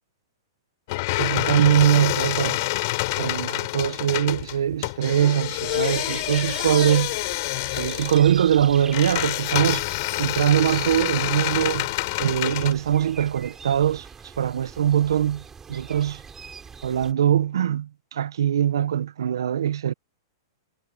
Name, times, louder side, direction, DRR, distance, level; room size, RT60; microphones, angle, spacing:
sound 1, 0.9-12.7, left 22 dB, 50° left, 6.1 m, -27 dB
voice 1, 1.2-2.6 3.2-7.1 7.8-9.9 10.2-11.9 12.2-16.2 16.8-19.9, right 10 dB, 85° right, 0.8 m, -22 dB
sound 2, 5.7-17.1, right 6 dB, 15° right, 6.7 m, -42 dB
hypercardioid pair, 145°, 2 cm